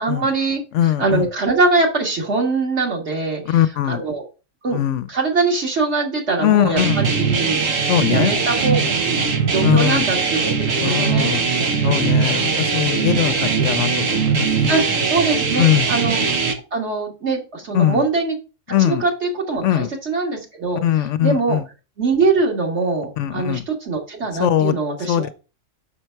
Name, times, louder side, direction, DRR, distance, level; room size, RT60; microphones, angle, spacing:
voice 1, 0.0-4.2 4.6-4.8 5.1-8.8 9.0-11.4 11.8-12.0 14.7-16.3 16.7-18.4 18.8-21.6 22.0-25.3, right 3 dB, 60° right, 2.0 m, -22 dB
voice 2, 0.7-1.3 3.5-4.0 4.7-5.0 6.4-7.1 7.9-8.3 9.6-10.1 10.8-11.5 11.8-14.7 15.6-15.9 17.7-18.0 18.7-19.0 19.6-19.9 20.8-21.6 23.2-23.6 24.4-24.8 25.1-25.3, left 11 dB, 75° left, 0.9 m, -20 dB
sound 1, 6.8-16.5, right 5 dB, 85° right, 1.4 m, -20 dB
5.8 x 5.5 x 4.5 m
omnidirectional pair, 1.3 m